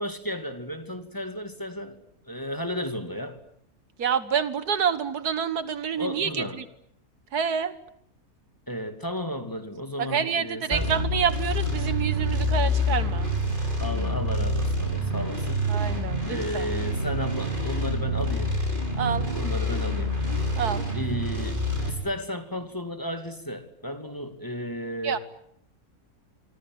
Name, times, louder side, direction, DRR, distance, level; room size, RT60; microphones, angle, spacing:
voice 1, 0.0-2.0 2.2-3.4 5.9-6.6 8.7-10.9 13.8-15.8 16.3-18.6 19.1-20.2 20.9-25.2, equal, 15° left, 2.6 m, -34 dB
voice 2, 4.0-6.6 7.3-7.7 10.0-13.3 15.7-16.7 19.0-19.3 20.6-20.8 25.0-25.2, right 7 dB, 85° right, 2.0 m, -27 dB
sound 1, 10.7-21.9, left 1 dB, 30° right, 6.0 m, -27 dB
26.5 x 23.5 x 9.5 m
omnidirectional pair, 1.6 m